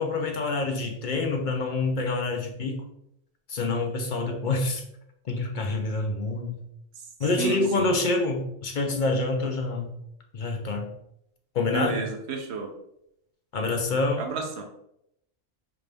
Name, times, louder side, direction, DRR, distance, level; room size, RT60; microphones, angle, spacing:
voice 1, 0.0-2.8 3.5-4.8 5.2-6.6 7.2-10.0 10.3-10.9 11.5-12.0 13.5-14.3, left 3 dB, 50° left, 3 dB, 0.6 m, -27 dB
voice 2, 7.4-7.9 11.7-12.7 14.2-14.6, right 4 dB, 60° right, 2 dB, 1.0 m, -31 dB
5.8 x 2.5 x 3.4 m, 0.77 s
omnidirectional pair, 1.3 m